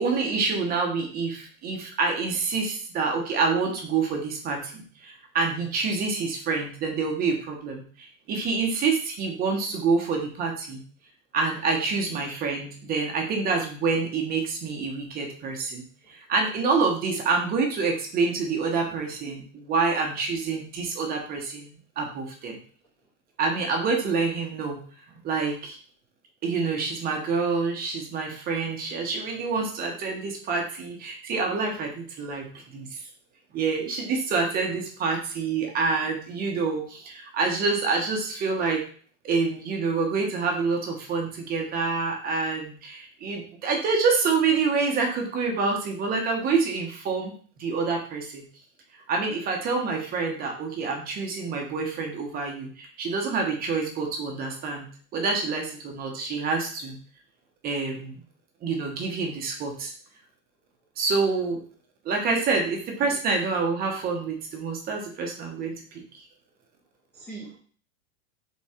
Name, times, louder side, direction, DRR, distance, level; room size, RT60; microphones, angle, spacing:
voice 1, 0.0-10.8 11.3-21.7 22.0-22.6 23.4-24.8 25.2-25.8 26.4-33.0 33.5-38.8 39.2-48.4 49.1-54.9 55.1-57.0 57.6-58.2 58.6-59.9 61.0-61.6 62.0-66.0, right 4 dB, 25° right, 1 dB, 0.8 m, -27 dB
voice 2, 67.1-67.6, right 1 dB, 5° left, -6 dB, 0.5 m, -42 dB
3.7 x 3.0 x 4.2 m, 0.43 s
supercardioid pair, 150°, 39 cm